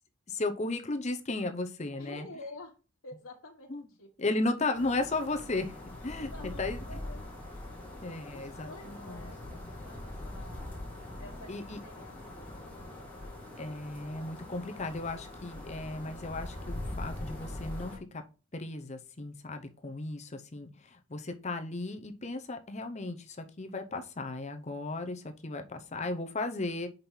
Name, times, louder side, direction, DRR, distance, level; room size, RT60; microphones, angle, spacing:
voice 1, 0.3-2.3 3.7-3.8 4.2-6.8 8.0-9.3 11.5-11.8 13.6-18.2 18.5-26.9, left 2 dB, 30° left, 6 dB, 0.7 m, -35 dB
voice 2, 1.9-2.7 3.0-3.7 4.0-4.1 6.3-6.6 6.9-7.3 8.0-11.5 11.8-13.1, left 2 dB, 90° left, -4 dB, 1.4 m, -49 dB
sound 1, 4.7-18.0, left 1 dB, 5° left, 1.9 m, -42 dB
5.2 x 4.4 x 5.5 m, 0.33 s
head